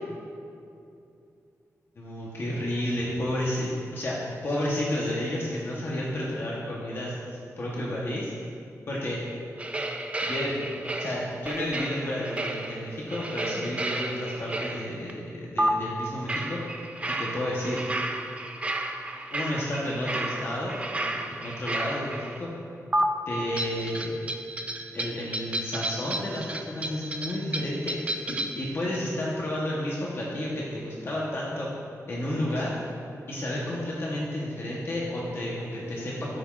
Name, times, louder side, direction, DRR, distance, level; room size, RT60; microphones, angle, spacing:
voice 1, 2.0-4.2 4.4-8.3 8.9-9.2 10.3-16.6 17.2-17.8 19.3-22.5 23.3-24.4 24.9-31.7 32.1-32.7 33.3-36.4, left 1 dB, 45° left, -5 dB, 1.0 m, -31 dB
sound 1, 9.6-15.1 15.6-15.7 16.3-22.4 22.9-23.0 23.6-28.6, right 1 dB, 20° right, 0.4 m, -32 dB
13.0 x 5.8 x 2.4 m, 2.6 s
wide cardioid pair, 180°, 6 cm